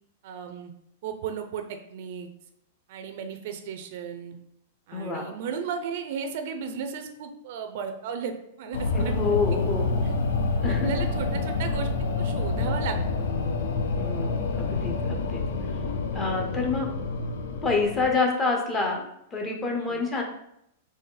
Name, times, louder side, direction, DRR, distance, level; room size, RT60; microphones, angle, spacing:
voice 1, 0.2-0.7 1.0-2.3 2.9-4.3 4.9-9.1 9.5-9.6 10.0-10.1 10.7-11.9 12.2-13.3 19.7-20.0, right 6 dB, 50° right, 6 dB, 0.5 m, -35 dB
voice 2, 4.9-5.3 8.9-9.8 10.6-10.9 14.0-15.4 16.1-17.0 17.6-20.2, left 3 dB, 15° left, 1 dB, 0.7 m, -27 dB
sound 1, 8.7-18.1, left 3 dB, 80° left, 0.6 m, -27 dB
4.1 x 3.1 x 3.9 m, 0.76 s
supercardioid pair, 165°, 0 cm